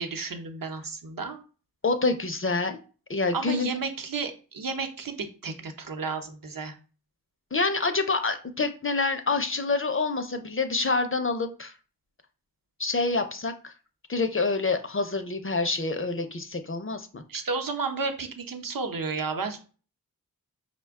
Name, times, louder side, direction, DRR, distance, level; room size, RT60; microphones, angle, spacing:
voice 1, 0.0-1.4 3.3-6.7 17.3-19.6, right 4 dB, 60° right, 6 dB, 0.7 m, -32 dB
voice 2, 1.8-2.8 3.1-3.7 7.5-11.7 12.8-13.7 14.1-17.2, left 3 dB, 35° left, 8 dB, 0.5 m, -27 dB
5.0 x 2.2 x 3.5 m, 0.37 s
wide cardioid pair, 40°, 38 cm